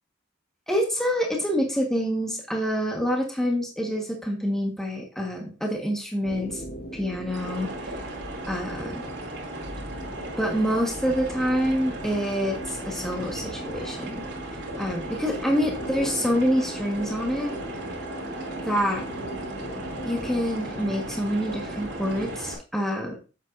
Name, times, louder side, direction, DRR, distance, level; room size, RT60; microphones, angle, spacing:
voice 1, 0.7-6.6 6.9-7.9 8.5-9.0 10.4-14.2 14.8-17.5 18.7-19.1 20.0-23.2, equal, ahead, 0 dB, 1.4 m, -26 dB
sound 1, 6.2-22.4, equal, 55° left, 1.4 m, -39 dB
sound 2, 7.3-22.5, right 2 dB, 70° right, 2.9 m, -37 dB
8.3 x 7.4 x 2.6 m, 0.32 s
head